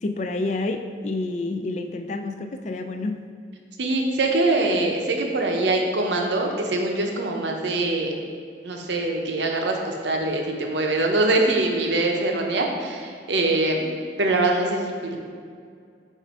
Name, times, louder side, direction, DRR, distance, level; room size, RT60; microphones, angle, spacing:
voice 1, 0.0-3.2, left 2 dB, 40° left, 7 dB, 0.3 m, -28 dB
voice 2, 3.8-8.1 8.6-13.9 14.2-15.2, right 2 dB, 80° right, 1 dB, 0.8 m, -23 dB
7.1 x 2.6 x 5.2 m, 2.2 s
head